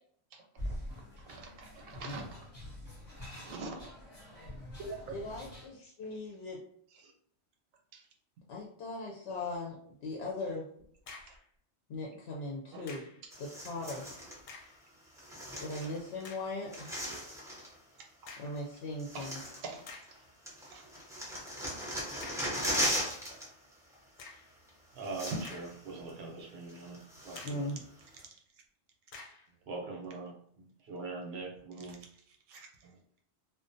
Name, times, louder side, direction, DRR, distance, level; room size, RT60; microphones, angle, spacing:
voice 1, 0.3-0.8 1.3-2.5 3.3-3.8 4.8-5.1 7.0-7.1 7.9-8.0 11.3-11.4 12.7-12.9 19.1-19.3 19.6-19.9 20.7-20.9 32.5-33.2, right 3 dB, 85° right, 2 dB, 1.0 m, -45 dB
sound 1, 0.6-5.7, left 1 dB, 35° left, 0.8 m, -45 dB
voice 2, 5.1-6.6 8.5-10.7 11.9-13.0 13.4-14.1 15.6-16.9 18.4-19.4 27.4-27.8, left 2 dB, 65° left, -2 dB, 0.7 m, -39 dB
sound 2, 10.8-11.5 12.9-13.3 14.4-14.9 15.5-15.6 16.2-16.6 18.3-18.7 19.3-19.4 19.9-20.2 22.2-22.6 24.2-24.6 25.2-26.0 26.4-26.5 27.4-27.7 29.1-29.5, left 4 dB, 90° left, 1.0 m, -50 dB
sound 3, 13.3-14.4 15.2-16.2 16.5-17.7 18.6-18.7 19.0-20.2 20.5-23.5 23.7-23.9 24.7-24.8 25.0-25.7 26.1-26.2 26.7-27.7 28.2-28.3, equal, 5° right, 0.4 m, -37 dB
voice 3, 24.9-27.7 29.7-32.0, right 3 dB, 60° right, 0 dB, 0.8 m, -42 dB
2.5 x 2.1 x 2.5 m, 0.64 s
omnidirectional pair, 1.3 m